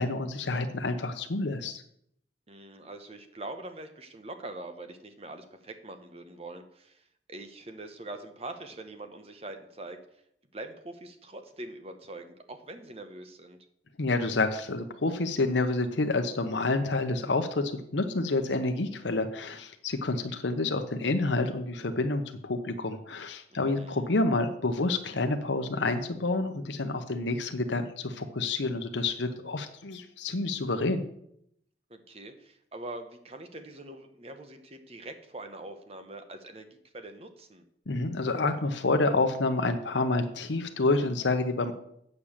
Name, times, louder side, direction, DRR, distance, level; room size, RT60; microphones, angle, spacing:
voice 1, 0.0-1.8 14.0-31.0 37.9-41.7, left 2 dB, 85° left, 7 dB, 0.9 m, -28 dB
voice 2, 2.5-7.0 7.3-10.0 10.5-13.6 23.5-24.1 31.9-37.6, right 2 dB, 35° right, 7 dB, 1.1 m, -43 dB
8.6 x 6.8 x 7.3 m, 0.72 s
head